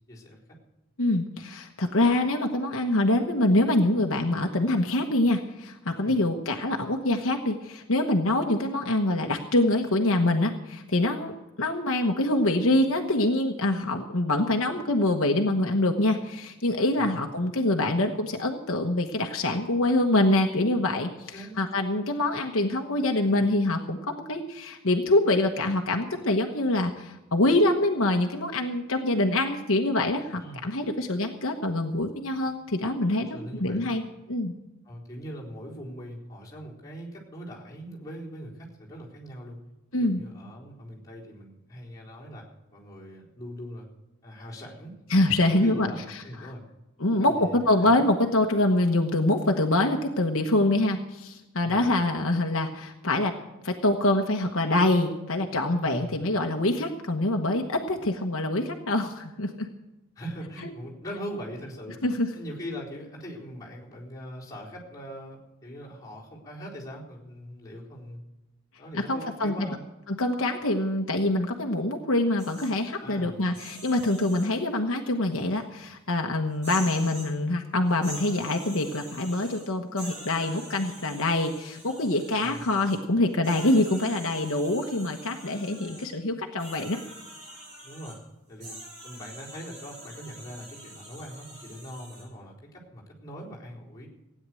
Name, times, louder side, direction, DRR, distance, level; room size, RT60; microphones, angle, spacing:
voice 1, 0.1-0.6 6.0-6.2 17.0-17.2 21.3-21.6 30.4-30.6 33.2-33.9 34.8-39.6 39.9-42.4 42.7-43.9 44.2-44.9 45.5-46.6 47.1-48.1 51.6-51.8 55.8-56.2 60.2-62.0 62.3-68.2 68.8-69.8 73.0-73.4 82.4-82.6 87.8-88.2 88.5-88.8 89.0-94.1, equal, 15° left, -6 dB, 4.1 m, -41 dB
voice 2, 1.0-11.3 11.6-34.0 34.3-34.5 39.9-40.2 45.1-46.2 47.0-53.3 53.6-59.7 62.0-62.3 68.9-69.7 70.1-87.0, left 1 dB, 65° left, 3 dB, 1.2 m, -25 dB
sound 1, 72.4-72.7 73.4-74.5 75.5-75.6 76.5-77.3 77.9-79.7 80.0-83.0 83.4-86.1 86.6-88.2 88.6-92.2, right 1 dB, 35° right, 6.9 m, -44 dB
16.5 x 9.6 x 7.7 m, 1.0 s
head